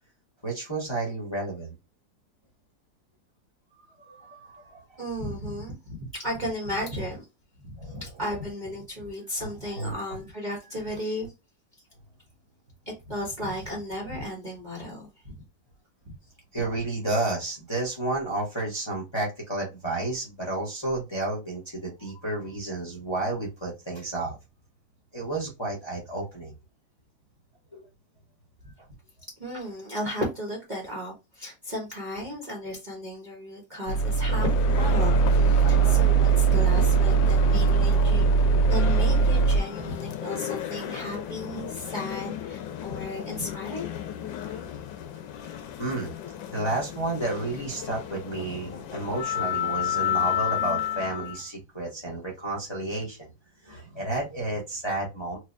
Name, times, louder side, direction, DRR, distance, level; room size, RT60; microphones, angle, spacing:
voice 1, 0.4-1.7 4.0-5.0 7.8-8.0 9.7-9.9 16.5-24.4 25.1-26.5 27.7-27.9 44.4-44.7 45.4-46.1 46.4-53.3 53.6-55.4, right 2 dB, 20° left, 0.9 m, -31 dB
voice 2, 5.0-7.2 7.6-11.3 13.1-15.4 28.6-28.7 29.4-43.9, left 1 dB, 30° right, 1.0 m, -34 dB
sound 1, 33.9-39.6, right 5 dB, 70° left, 0.9 m, -20 dB
sound 2, 34.3-51.4, left 10 dB, 85° left, 1.4 m, -33 dB
4.5 x 2.4 x 2.5 m
omnidirectional pair, 2.0 m